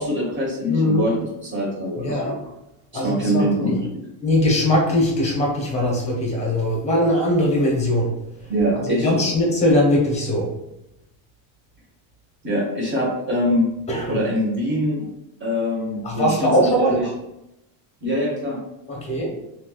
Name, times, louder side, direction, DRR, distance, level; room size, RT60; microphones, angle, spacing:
voice 1, 0.0-2.3 2.9-3.9 8.5-9.2 12.4-13.7 14.1-15.1 15.4-17.1 18.0-18.6, equal, 25° right, -3 dB, 1.2 m, -23 dB
voice 2, 0.7-1.1 2.0-2.4 2.9-3.8 4.2-8.1 8.9-10.5 13.9-14.2 16.0-17.0 18.9-19.4, left 1 dB, 15° left, -1 dB, 1.0 m, -20 dB
3.2 x 2.9 x 2.4 m, 0.86 s
cardioid pair, 115°, 47 cm